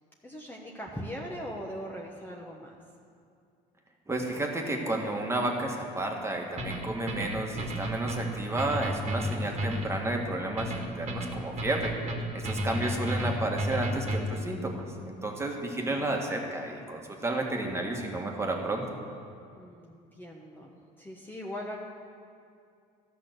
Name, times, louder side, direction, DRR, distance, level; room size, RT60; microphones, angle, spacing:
voice 1, 0.2-2.8 15.8-16.2 19.6-21.8, equal, 10° left, -2 dB, 1.2 m, -41 dB
voice 2, 4.1-12.0 12.3-18.9, right 2 dB, 15° right, 1 dB, 1.8 m, -32 dB
sound 1, 6.6-14.5, equal, 35° right, 1.8 m, -33 dB
13.0 x 6.1 x 7.9 m, 2.4 s
supercardioid pair, 90°, 18 cm